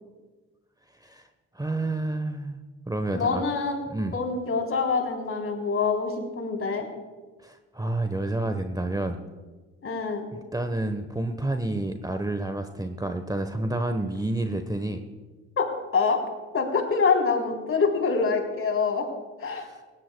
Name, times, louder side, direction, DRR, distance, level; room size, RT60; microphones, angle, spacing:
voice 1, 1.5-3.4 3.9-4.2 7.4-9.2 10.3-15.0 19.6-19.7, right 2 dB, 10° right, 7 dB, 1.1 m, -29 dB
voice 2, 3.1-3.8 4.1-6.9 9.8-10.2 15.6-15.7 15.9-16.2 16.5-19.1 19.4-19.7, left 4 dB, 40° left, 2 dB, 3.7 m, -25 dB
19.5 x 17.0 x 2.3 m, 1.3 s
hypercardioid pair, 55°, 33 cm